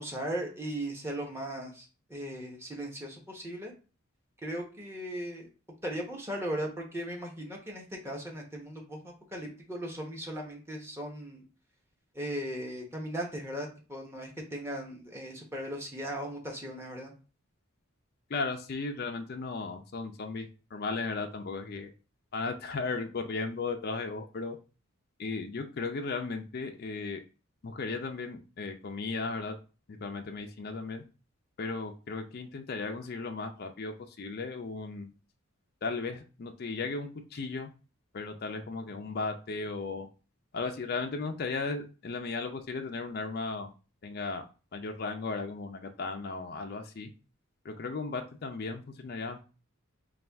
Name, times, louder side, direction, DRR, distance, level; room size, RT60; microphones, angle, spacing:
voice 1, 0.0-3.7 4.4-5.5 5.8-11.4 12.1-17.1, right 1 dB, 10° right, 0 dB, 0.9 m, -38 dB
voice 2, 18.3-21.9 22.3-24.6 25.2-27.2 27.6-29.6 29.9-31.0 31.6-35.1 35.8-37.7 38.1-40.1 40.5-43.7 44.0-44.5 44.7-47.1 47.6-49.4, left 4 dB, 50° left, 4 dB, 0.4 m, -36 dB
4.3 x 2.3 x 3.4 m, 0.34 s
head